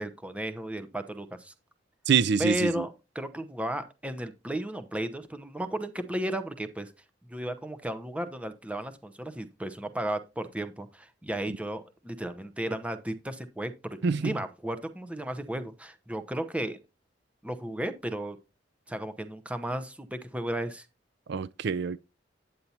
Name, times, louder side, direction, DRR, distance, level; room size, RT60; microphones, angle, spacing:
voice 1, 0.0-1.5 2.4-6.9 7.2-16.8 17.4-18.4 18.9-20.9, right 1 dB, 5° right, 0.8 m, -34 dB
voice 2, 2.1-2.8 14.0-14.3 21.3-22.0, right 6 dB, 65° right, 0.4 m, -25 dB
9.2 x 8.4 x 2.8 m
head